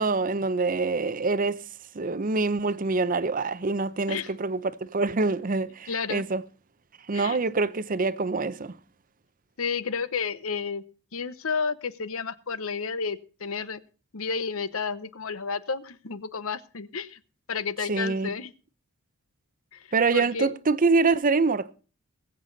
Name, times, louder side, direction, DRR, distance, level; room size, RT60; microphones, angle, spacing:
voice 1, 0.0-1.6 1.9-6.4 7.1-8.8 17.9-18.3 19.9-21.7, right 3 dB, 40° right, 0.6 m, -25 dB
voice 2, 5.9-6.2 7.1-7.4 9.6-10.8 11.1-13.8 14.1-17.2 17.5-18.5 19.7-20.6, left 5 dB, 70° left, 0.9 m, -31 dB
20.5 x 8.1 x 4.0 m
head